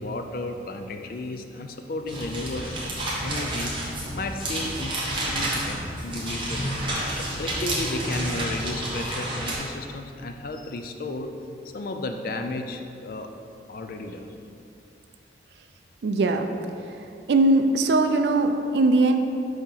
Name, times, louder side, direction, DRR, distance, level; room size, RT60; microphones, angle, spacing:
voice 1, 0.0-2.8 3.2-6.7 7.4-11.3 11.7-13.3 13.7-14.4, left 2 dB, 50° left, 5 dB, 0.4 m, -33 dB
sound 1, 2.1-9.6, right 1 dB, 25° right, 1.0 m, -30 dB
voice 2, 16.0-16.5 17.3-19.2, right 2 dB, 70° right, 7 dB, 0.4 m, -20 dB
6.3 x 2.9 x 5.5 m, 2.6 s
head